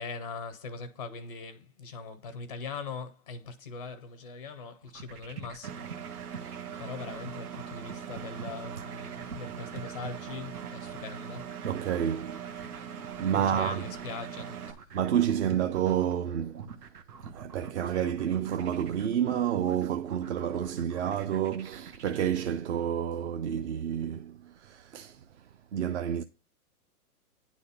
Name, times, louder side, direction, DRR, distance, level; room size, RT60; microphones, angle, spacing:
voice 1, 0.0-5.9 6.1-11.5 13.3-14.8, left 4 dB, 25° left, 0.4 m, -41 dB
sound 1, 4.8-22.3, right 6 dB, 85° right, 1.5 m, -46 dB
Engine, 5.6-14.7, right 8 dB, 70° right, 1.6 m, -41 dB
voice 2, 11.6-12.4 13.2-13.8 14.9-16.7 17.3-25.2 25.7-26.2, right 9 dB, 50° right, 0.5 m, -29 dB
9.7 x 4.2 x 5.2 m
hypercardioid pair, 160°, 46 cm